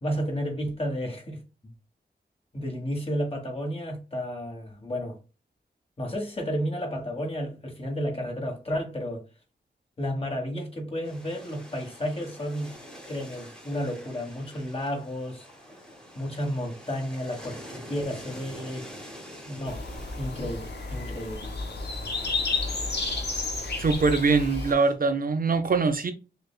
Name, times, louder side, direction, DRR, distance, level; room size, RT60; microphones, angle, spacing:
voice 1, 0.0-1.4 2.5-5.2 6.0-9.2 10.0-12.7 13.1-15.5 16.1-18.9 19.5-19.8 20.2-21.5, equal, 30° left, 1.5 m, -32 dB
sound 1, 11.0-24.9, equal, 5° left, 1.1 m, -46 dB
sound 2, 19.7-24.7, left 3 dB, 65° left, 0.9 m, -31 dB
voice 2, 23.8-26.1, right 4 dB, 50° right, 0.5 m, -23 dB
6.2 x 2.2 x 2.3 m
wide cardioid pair, 125°, 18 cm